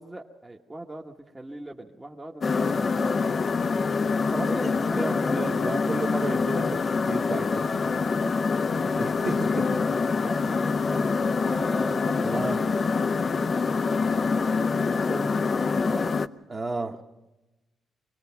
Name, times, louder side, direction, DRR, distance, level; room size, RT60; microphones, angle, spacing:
voice 1, 0.0-3.1 4.4-5.6 8.2-8.5 10.2-11.1 11.4-12.9 13.4-16.2, right 1 dB, 15° right, -1 dB, 1.1 m, -40 dB
sound 1, 2.4-16.3, left 4 dB, 40° left, 0.6 m, -25 dB
voice 2, 4.3-7.7 9.0-10.0 12.2-12.6 16.5-17.0, right 3 dB, 30° right, 3 dB, 1.3 m, -33 dB
24.0 x 19.0 x 5.8 m, 1.0 s
cardioid pair, 100°, 0 cm